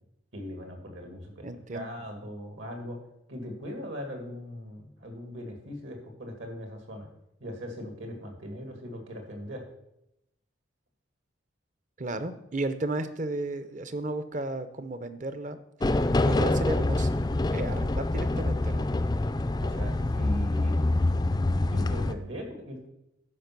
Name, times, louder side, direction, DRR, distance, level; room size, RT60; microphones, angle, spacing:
voice 1, 0.3-3.0 3.3-7.1 7.4-9.6 19.6-21.0 21.7-22.9, equal, 70° right, 3 dB, 2.2 m, -39 dB
voice 2, 1.4-1.9 12.0-15.6 16.2-17.1 17.5-18.9, right 2 dB, 40° right, 11 dB, 0.6 m, -33 dB
sound 1, 15.8-22.1, left 2 dB, 20° left, 0.4 m, -26 dB
12.0 x 5.2 x 6.0 m, 0.85 s
head